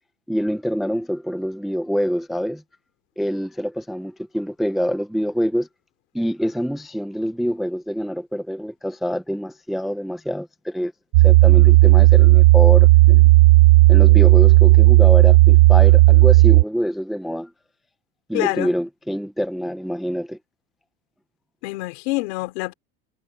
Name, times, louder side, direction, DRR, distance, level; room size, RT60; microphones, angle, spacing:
voice 1, 0.3-2.6 3.2-5.7 6.1-10.9 11.2-13.3 13.9-17.5 18.3-20.4, equal, ahead, 0.5 m, -26 dB
sound 1, 11.1-16.6, right 20 dB, 65° right, 1.2 m, -11 dB
voice 2, 18.3-18.7 21.6-22.7, left 24 dB, 70° left, 3.6 m, -26 dB
cardioid pair, 170°, 34 cm